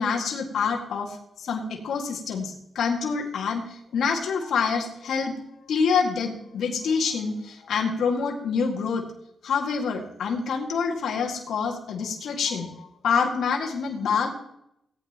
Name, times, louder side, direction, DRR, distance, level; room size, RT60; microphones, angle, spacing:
voice 1, 0.0-5.3 5.7-9.0 9.4-14.3, left 5 dB, 80° left, 0 dB, 1.9 m, -26 dB
18.0 x 9.0 x 2.9 m, 0.78 s
cardioid pair, 85°, 0 cm